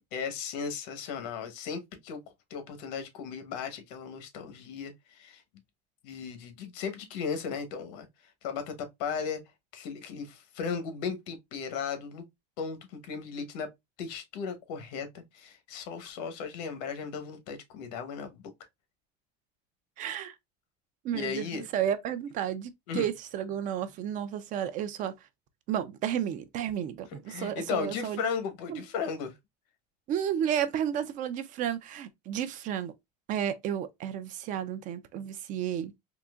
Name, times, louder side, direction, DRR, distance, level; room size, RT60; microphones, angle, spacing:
voice 1, 0.1-2.2 2.5-5.4 6.0-8.1 8.4-9.4 9.7-12.2 12.6-13.7 14.0-18.5 21.1-21.7 22.9-23.1 27.1-29.3, left 6 dB, 85° left, 1.0 m, -36 dB
voice 2, 20.0-20.4 21.0-25.1 25.7-28.2 28.7-28.8 30.1-32.9 33.3-35.9, right 9 dB, 40° right, 0.4 m, -32 dB
3.8 x 2.8 x 2.3 m
cardioid pair, 155°, 20 cm